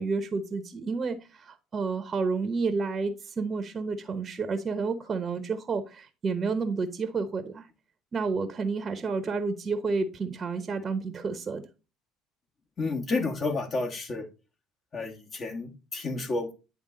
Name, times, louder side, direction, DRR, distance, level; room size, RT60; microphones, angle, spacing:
voice 1, 0.0-7.7 8.1-11.6, right 4 dB, 35° right, 0.9 m, -30 dB
voice 2, 12.8-14.3 14.9-16.5, left 3 dB, 40° left, 1.5 m, -31 dB
9.9 x 3.4 x 3.8 m
hypercardioid pair, 75°, 0 cm